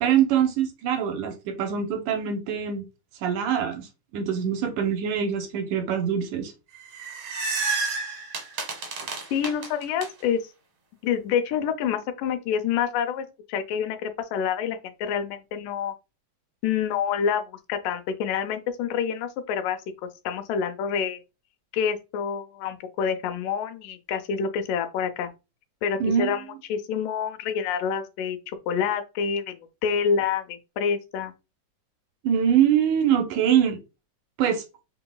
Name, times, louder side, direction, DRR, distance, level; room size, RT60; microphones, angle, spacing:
voice 1, 0.0-2.8 3.2-3.9 4.1-6.5 26.0-26.3 32.2-33.8 34.4-34.6, right 8 dB, 75° right, 2.1 m, -23 dB
sound 1, 6.8-10.1, right 4 dB, 60° right, 1.4 m, -30 dB
voice 2, 9.3-10.5 11.0-15.9 16.6-19.8 20.3-21.2 21.7-25.3 25.8-26.4 26.7-31.3, left 7 dB, 80° left, 2.3 m, -27 dB
6.1 x 3.9 x 2.2 m
omnidirectional pair, 3.8 m